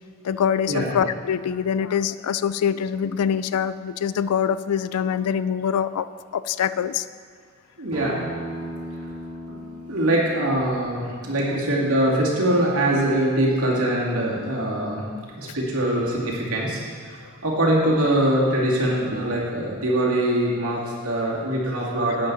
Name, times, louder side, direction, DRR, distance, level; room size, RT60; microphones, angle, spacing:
voice 1, 0.2-6.1 6.3-7.1 15.4-15.6, left 8 dB, 85° left, 15 dB, 0.4 m, -24 dB
voice 2, 7.8-8.2 9.5-9.6 9.9-15.0 15.3-16.8 17.1-22.3, right 1 dB, 75° right, -4 dB, 2.4 m, -23 dB
Acoustic guitar, 7.9-13.1, right 1 dB, 30° right, 2.3 m, -38 dB
11.0 x 8.8 x 4.0 m, 2.1 s
head